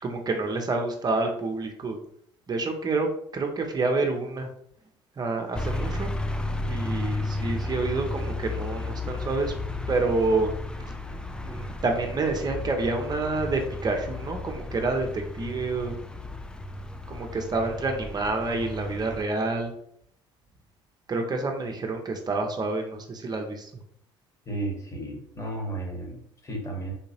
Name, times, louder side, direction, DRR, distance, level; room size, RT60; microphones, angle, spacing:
voice 1, 0.0-2.0 2.5-4.5 5.2-6.1 6.7-9.5 9.9-10.5 10.8-10.9 11.4-16.0 17.1-19.7 21.1-23.7, right 3 dB, 30° right, 3 dB, 0.6 m, -28 dB
sound 1, 5.5-19.3, left 2 dB, 5° left, 0.3 m, -33 dB
voice 2, 24.4-26.9, right 2 dB, 20° left, 0 dB, 1.2 m, -33 dB
3.5 x 2.8 x 2.7 m, 0.67 s
hypercardioid pair, 60°, 14 cm